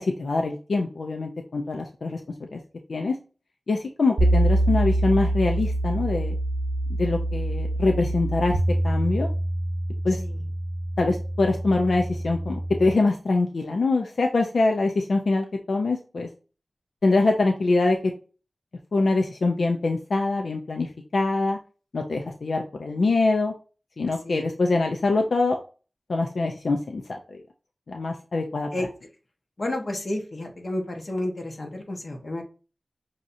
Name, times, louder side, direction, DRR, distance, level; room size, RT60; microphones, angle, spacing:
voice 1, 0.0-2.2 2.5-2.6 2.9-3.1 3.7-6.4 7.0-8.6 8.8-9.3 10.0-10.2 11.0-16.3 17.0-18.0 18.9-21.6 21.9-23.5 24.0-25.6 26.1-27.4 27.9-28.9, left 3 dB, 90° left, 2 dB, 0.5 m, -24 dB
sound 1, 4.2-12.9, right 1 dB, 70° right, 0.7 m, -25 dB
voice 2, 29.6-32.4, left 1 dB, 55° left, 2 dB, 1.1 m, -31 dB
6.1 x 2.8 x 2.6 m, 0.35 s
wide cardioid pair, 80°, 0 cm